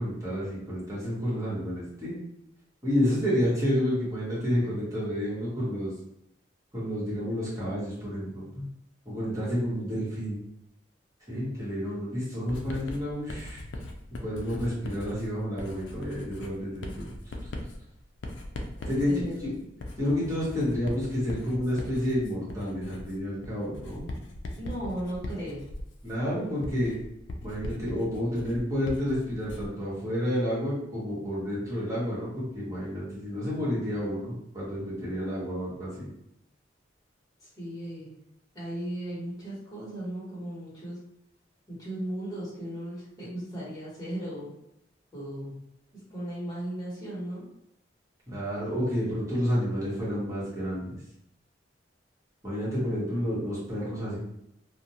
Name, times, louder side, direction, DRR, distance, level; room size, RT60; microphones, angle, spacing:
voice 1, 0.0-2.2 2.8-5.9 6.7-8.7 9.0-10.4 11.3-13.6 14.2-17.1 18.9-19.5 20.0-24.0 26.0-26.9 27.4-36.1 48.3-51.0 52.4-54.2, equal, 15° right, -8 dB, 1.0 m, -30 dB
Writing, 12.5-29.8, left 1 dB, 75° left, 0.4 m, -40 dB
voice 2, 18.8-19.5 24.6-25.7 37.4-38.1 38.5-41.0 41.7-44.5 45.1-45.6 46.1-47.4, right 1 dB, 20° left, -9 dB, 1.2 m, -36 dB
2.5 x 2.1 x 2.8 m, 0.79 s
head